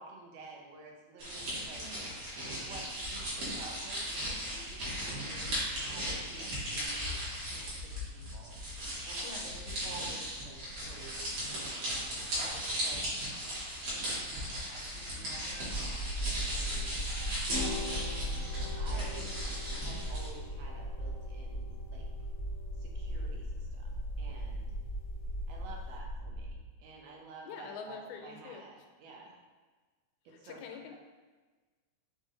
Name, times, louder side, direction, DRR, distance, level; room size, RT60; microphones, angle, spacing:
voice 1, 0.0-1.8 2.3-7.2 7.5-8.5 9.0-13.1 13.8-18.1 18.8-19.5 19.7-22.1 22.8-24.8 25.5-29.4 30.3-31.0, right 3 dB, 75° right, 0 dB, 1.6 m, -52 dB
sound 1, 1.2-20.3, equal, 55° right, 2.1 m, -37 dB
voice 2, 1.7-2.1 9.2-9.6 18.9-19.3 27.5-28.6 30.3-31.0, left 6 dB, 90° left, 4 dB, 2.1 m, -46 dB
sound 2, 15.7-26.6, equal, 65° left, 0.7 m, -38 dB
sound 3, 17.5-25.9, left 2 dB, 35° right, 0.9 m, -47 dB
5.6 x 2.5 x 3.8 m, 1.3 s
omnidirectional pair, 3.5 m